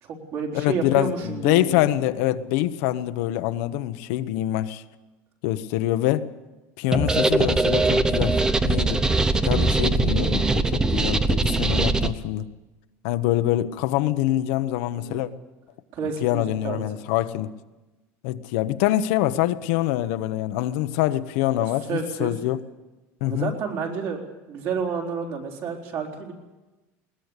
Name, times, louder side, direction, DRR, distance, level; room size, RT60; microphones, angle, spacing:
voice 1, 0.0-1.8 14.9-15.3 15.9-16.8 21.9-22.3 23.2-24.2 24.5-26.3, right 5 dB, 50° right, 1 dB, 4.0 m, -30 dB
voice 2, 0.5-4.8 5.4-6.3 6.8-9.0 9.4-12.5 13.0-15.3 16.2-17.5 18.2-22.6 23.2-23.5, left 14 dB, 75° left, 10 dB, 1.0 m, -25 dB
sound 1, 6.9-12.1, right 3 dB, 10° right, 0.7 m, -21 dB
20.5 x 19.5 x 8.3 m, 1.1 s
cardioid pair, 160°, 7 cm